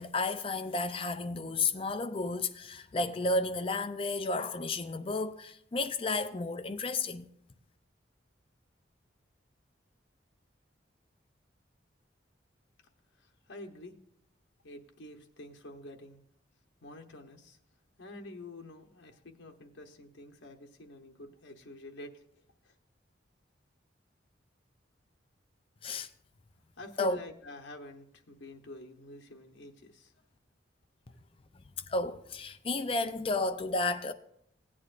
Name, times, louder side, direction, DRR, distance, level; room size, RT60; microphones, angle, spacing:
voice 1, 0.0-7.3 25.8-26.1 27.0-27.2 31.9-34.1, left 3 dB, 30° left, 0.4 m, -32 dB
voice 2, 13.1-14.0 14.6-16.2 16.8-17.6 18.0-22.8 26.8-30.1 31.1-31.2, left 1 dB, 80° left, 0.9 m, -48 dB
16.5 x 8.6 x 2.5 m
head